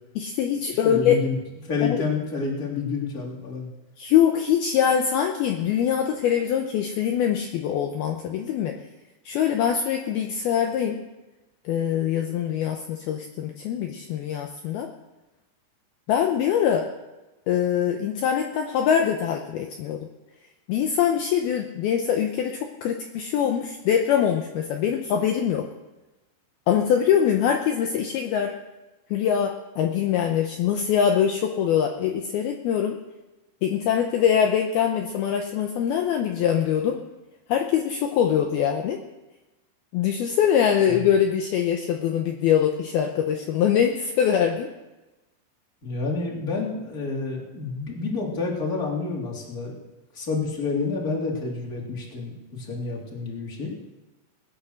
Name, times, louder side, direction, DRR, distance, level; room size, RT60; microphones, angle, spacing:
voice 1, 0.2-1.2 1.8-2.0 4.0-8.7 9.3-11.0 11.7-14.9 16.1-16.9 17.5-20.1 20.7-25.7 26.7-28.5 29.1-33.0 33.6-37.0 37.5-39.0 39.9-44.7, left 8 dB, 80° left, 4 dB, 2.3 m, -23 dB
voice 2, 0.7-1.3 1.6-3.7 40.9-41.0 45.8-49.7 50.1-53.7, left 4 dB, 20° left, -2 dB, 3.0 m, -29 dB
19.5 x 10.0 x 6.5 m, 1.1 s
omnidirectional pair, 5.4 m